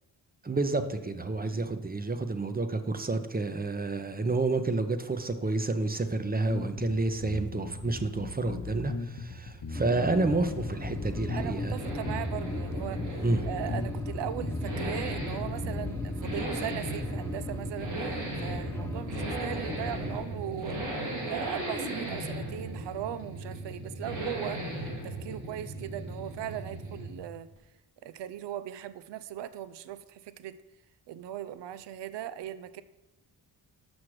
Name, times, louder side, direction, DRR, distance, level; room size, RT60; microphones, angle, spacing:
voice 1, 0.4-11.7 13.2-13.5, right 3 dB, 20° right, 9 dB, 0.7 m, -30 dB
voice 2, 1.4-1.8 11.3-13.0 13.5-20.8 21.3-24.6 25.0-27.5 28.0-30.6 31.1-32.8, right 11 dB, 65° right, 15 dB, 0.6 m, -39 dB
sound 1, 6.5-16.1, left 4 dB, 45° left, 1.1 m, -38 dB
Accelerating revving vroom, 9.3-27.3 27.6-27.7, right 1 dB, 85° right, 2.7 m, -37 dB
sound 2, 9.7-20.3, left 1 dB, 5° left, 0.4 m, -37 dB
6.2 x 5.8 x 4.8 m, 1.0 s
supercardioid pair, 45°, 46 cm